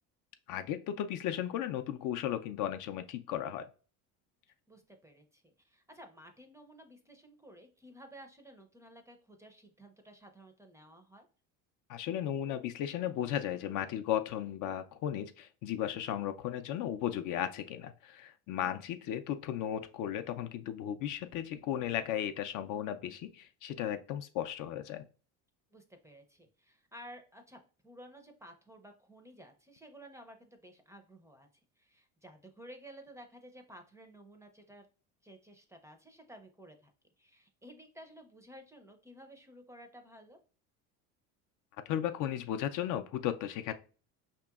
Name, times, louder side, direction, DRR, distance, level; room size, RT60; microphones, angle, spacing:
voice 1, 0.5-3.7 11.9-25.1 41.9-43.7, left 10 dB, 55° left, 9 dB, 0.5 m, -35 dB
voice 2, 4.7-11.3 25.7-31.5 31.8-34.9 35.2-36.9 37.2-40.4, equal, 10° right, 5 dB, 0.5 m, -54 dB
5.0 x 2.9 x 2.3 m, 0.37 s
supercardioid pair, 105°, 37 cm